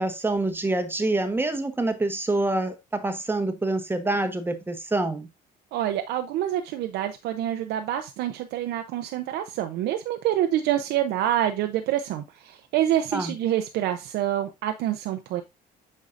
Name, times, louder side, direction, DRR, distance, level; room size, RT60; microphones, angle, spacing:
voice 1, 0.0-5.3 13.1-13.3, right 2 dB, 15° right, 1.1 m, -26 dB
voice 2, 5.7-15.4, right 12 dB, 85° right, 0.7 m, -27 dB
8.3 x 5.5 x 2.5 m
cardioid pair, 110°, 17 cm